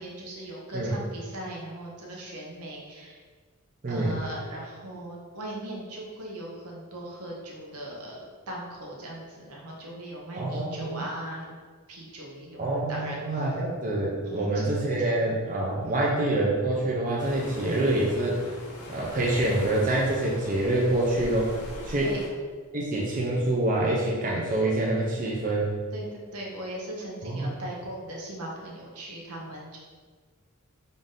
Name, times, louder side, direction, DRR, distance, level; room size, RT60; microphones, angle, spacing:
voice 1, 0.0-3.2 3.9-8.2 8.5-11.5 11.9-13.4 14.2-14.7 22.0-22.2 25.9-29.8, right 1 dB, 80° right, -2 dB, 0.8 m, -39 dB
voice 2, 3.8-4.2 10.4-11.0 12.6-18.4 18.9-21.5 21.8-22.1 22.7-25.7 27.2-27.6, right 1 dB, 35° right, -3 dB, 0.5 m, -26 dB
sound 1, 17.2-22.3, left 1 dB, 85° left, 0.8 m, -40 dB
3.7 x 2.6 x 3.6 m, 1.5 s
head